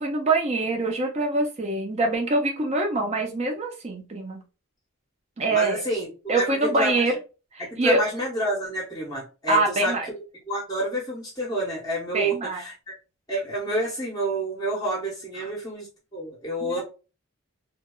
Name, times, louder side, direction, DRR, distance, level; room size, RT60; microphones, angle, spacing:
voice 1, 0.0-4.4 5.4-5.8 6.3-7.2 7.5-8.0 9.5-10.1 12.1-12.6 15.4-15.5 16.6-16.8, right 2 dB, 30° right, 2 dB, 0.5 m, -24 dB
voice 2, 5.5-6.1 6.4-6.5 6.7-6.9 7.6-9.9 10.5-12.7 13.3-16.8, right 1 dB, 15° left, -3 dB, 0.8 m, -29 dB
2.8 x 2.3 x 2.2 m, 0.31 s
head